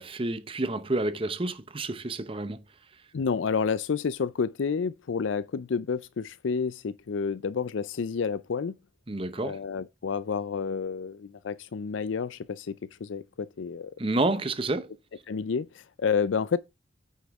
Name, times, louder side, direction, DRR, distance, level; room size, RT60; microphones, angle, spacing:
voice 1, 0.0-2.6 9.1-9.6 14.0-14.9, right 2 dB, 30° right, 0.8 m, -29 dB
voice 2, 3.1-8.8 9.4-12.8 13.0-13.9 15.3-16.6, left 5 dB, 85° left, 0.5 m, -30 dB
9.4 x 6.4 x 3.5 m
head